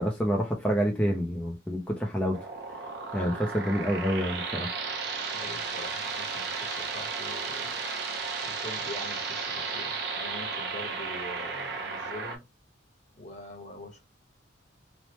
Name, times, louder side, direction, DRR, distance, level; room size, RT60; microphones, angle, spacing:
voice 1, 0.0-2.4 3.1-4.7, equal, 10° left, 0.4 m, -28 dB
sound 1, 2.3-12.4, right 4 dB, 60° right, 0.7 m, -34 dB
voice 2, 5.3-7.8 8.4-12.4 13.2-14.0, left 1 dB, 35° left, 0.9 m, -43 dB
3.1 x 2.0 x 2.9 m
head